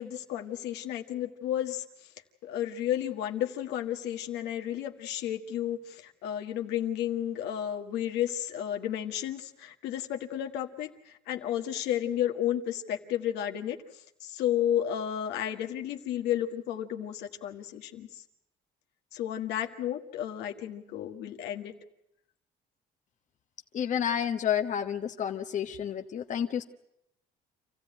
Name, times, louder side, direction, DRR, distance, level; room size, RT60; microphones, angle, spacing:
voice 1, 0.0-1.8 2.4-5.8 6.2-10.9 11.3-13.8 14.2-18.1 19.1-21.7, left 11 dB, 85° left, 4 dB, 1.7 m, -32 dB
voice 2, 23.7-26.6, left 9 dB, 45° left, 6 dB, 1.1 m, -30 dB
27.0 x 15.0 x 9.0 m, 0.82 s
cardioid pair, 110°, 17 cm